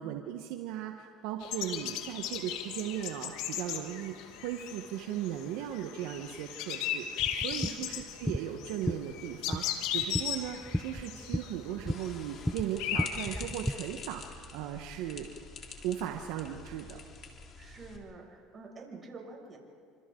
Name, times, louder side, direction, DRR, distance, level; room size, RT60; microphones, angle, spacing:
voice 1, 0.0-15.3 15.8-17.0, right 11 dB, 75° right, 4 dB, 1.3 m, -37 dB
sound 1, 1.4-13.4, left 10 dB, 70° left, 2.0 m, -37 dB
voice 2, 1.5-2.0 7.5-7.9 17.6-19.6, right 3 dB, 35° right, 0 dB, 6.5 m, -48 dB
sound 2, 7.2-13.7, equal, ahead, 0.6 m, -36 dB
sound 3, 11.9-18.0, left 4 dB, 45° left, 3.6 m, -47 dB
29.5 x 26.0 x 3.9 m, 2.2 s
supercardioid pair, 90°, 0 cm